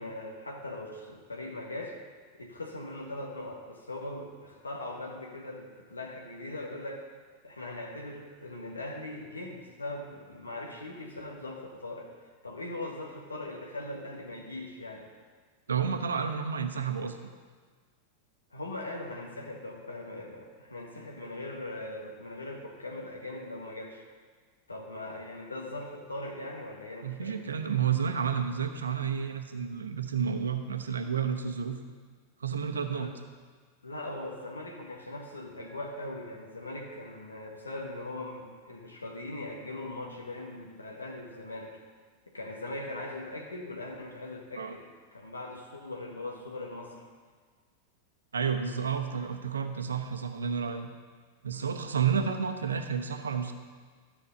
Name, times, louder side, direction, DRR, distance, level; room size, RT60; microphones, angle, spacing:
voice 1, 0.0-2.0 2.4-7.0 7.4-12.1 12.4-15.1 18.5-24.0 24.7-27.5 32.9-33.1 33.8-41.7 42.3-46.9 51.5-51.7, left 2 dB, 80° left, 0 dB, 1.4 m, -40 dB
voice 2, 15.7-17.2 27.0-31.8 32.4-33.1 44.6-44.7 48.3-50.9 51.4-53.5, right 7 dB, 70° right, 6 dB, 0.9 m, -30 dB
13.5 x 6.4 x 6.5 m, 1.5 s
figure-of-eight pair, 90°, 0 cm